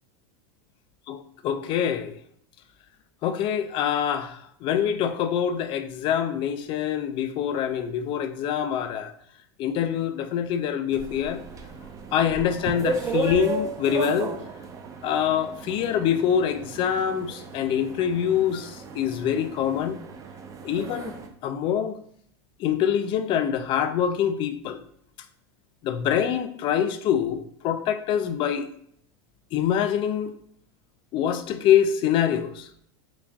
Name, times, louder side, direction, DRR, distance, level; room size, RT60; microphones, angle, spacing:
voice 1, 1.4-2.1 3.2-9.1 9.6-11.4 12.1-14.4 15.0-20.0 20.6-21.2 21.4-22.0 22.6-24.8 25.8-28.7 29.5-30.3 31.1-32.8, left 9 dB, 35° left, 0.4 m, -25 dB
sound 1, 10.9-21.3, right 3 dB, 20° right, 0.5 m, -34 dB
3.9 x 2.2 x 3.4 m
supercardioid pair, 125°, 15 cm